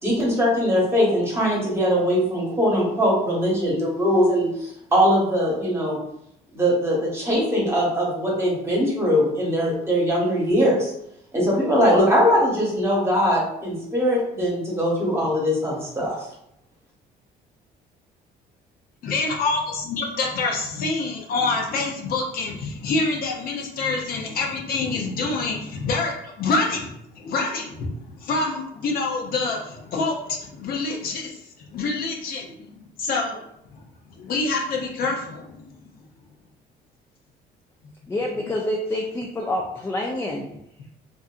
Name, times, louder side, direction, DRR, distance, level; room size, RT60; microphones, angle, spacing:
voice 1, 0.0-6.0 6.5-10.9 11.3-16.3, equal, 15° right, -4 dB, 1.0 m, -21 dB
voice 2, 19.0-31.3 31.7-33.4 34.2-35.7, left 3 dB, 60° left, 0 dB, 0.6 m, -26 dB
voice 3, 38.1-40.5, left 1 dB, 15° left, 0 dB, 0.3 m, -27 dB
2.6 x 2.5 x 2.4 m, 0.77 s
cardioid pair, 110°, 17 cm